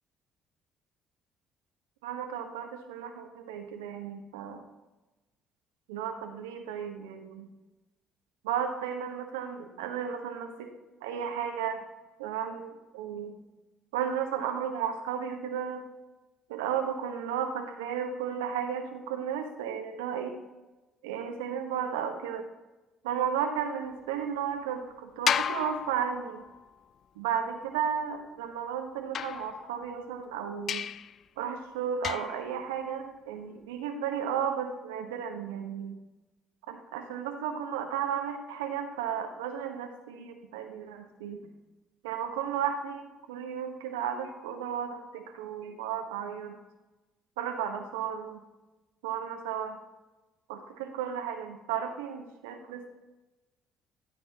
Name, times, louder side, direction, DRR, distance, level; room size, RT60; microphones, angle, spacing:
voice 1, 2.0-4.6 5.9-7.5 8.4-10.7 11.0-11.8 12.2-13.4 13.9-15.8 16.5-20.4 21.0-22.4 23.0-26.4 27.2-30.9 31.4-36.0 36.7-41.5 42.0-46.6 47.4-48.4 49.0-49.8 50.5-52.9, right 8 dB, 80° right, 5 dB, 1.1 m, -34 dB
sound 1, 25.3-26.6 29.1-30.0 30.7-31.2 32.0-32.5, left 8 dB, 50° left, 0.3 m, -32 dB
14.0 x 7.9 x 2.9 m, 1.1 s
hypercardioid pair, 55°, 0 cm